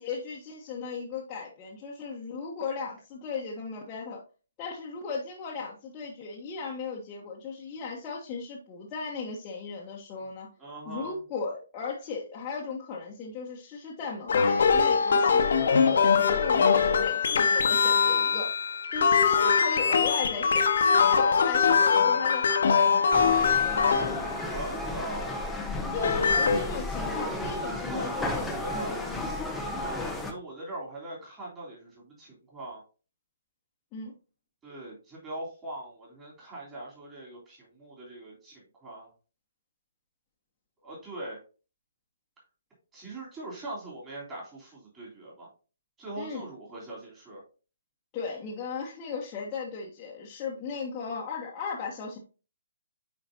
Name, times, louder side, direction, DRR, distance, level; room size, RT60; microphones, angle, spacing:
voice 1, 0.0-4.2 4.6-10.5 10.8-18.5 18.9-23.1 25.9-28.5 28.7-29.3 33.9-34.1 46.2-46.4 48.1-52.2, left 5 dB, 20° left, -5 dB, 1.1 m, -37 dB
voice 2, 10.6-11.2 24.5-25.4 26.4-26.7 27.9-28.1 28.5-29.0 29.7-32.8 34.6-39.1 40.8-41.4 42.9-45.5 46.0-47.4, right 2 dB, 15° right, -5 dB, 3.2 m, -41 dB
sound 1, 14.3-24.8 25.8-26.6, left 6 dB, 50° left, 1.0 m, -23 dB
sound 2, 23.1-30.3, left 2 dB, 5° left, 0.8 m, -33 dB
9.1 x 4.5 x 2.7 m, 0.35 s
figure-of-eight pair, 135°, 0 cm